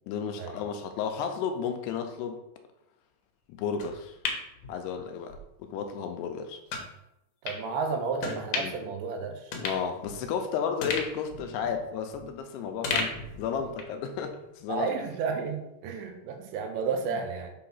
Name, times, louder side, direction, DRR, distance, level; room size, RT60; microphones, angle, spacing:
voice 1, 0.1-2.4 3.5-4.2 4.7-6.6 8.6-8.8 9.6-14.9, left 6 dB, 80° left, 6 dB, 2.7 m, -33 dB
sound 1, 3.8-5.4 5.8-5.9 6.7-6.9 7.4-7.6 8.2-8.9 9.2-9.3 9.5-10.4 10.8-12.4 12.8-14.0 14.3-14.4, left 4 dB, 65° left, 2.1 m, -35 dB
voice 2, 7.4-9.5 14.7-17.5, right 5 dB, 85° right, 4 dB, 3.2 m, -32 dB
7.8 x 3.7 x 5.7 m, 0.85 s
omnidirectional pair, 5.0 m